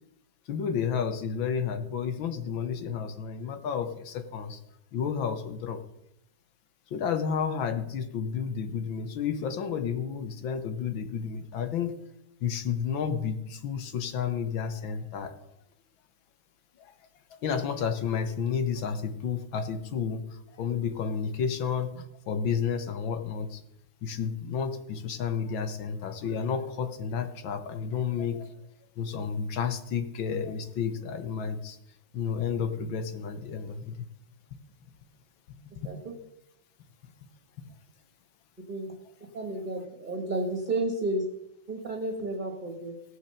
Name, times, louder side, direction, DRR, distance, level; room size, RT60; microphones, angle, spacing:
voice 1, 0.5-4.6 4.9-5.8 6.9-12.0 12.4-15.4 16.8-16.9 17.3-23.6 24.0-28.5 29.0-31.8 32.1-33.9 35.8-35.9, left 7 dB, 80° left, 9 dB, 1.8 m, -31 dB
voice 2, 39.3-41.2 41.7-42.9, right 2 dB, 25° right, 2 dB, 1.6 m, -31 dB
17.0 x 6.5 x 6.6 m, 0.83 s
omnidirectional pair, 2.1 m